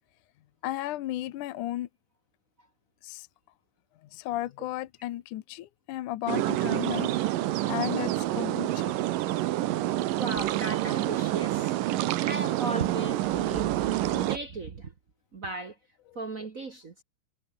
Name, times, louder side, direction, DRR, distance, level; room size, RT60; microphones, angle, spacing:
voice 1, 0.6-1.9 3.0-3.3 4.0-7.1 7.6-9.0, left 14 dB, 75° left, 2.4 m, -34 dB
sound 1, 6.3-14.4, right 15 dB, 80° right, 2.7 m, -28 dB
voice 2, 10.1-11.8 12.2-14.9 15.3-15.8 16.1-16.9, right 3 dB, 50° right, 1.0 m, -36 dB
omnidirectional pair, 3.8 m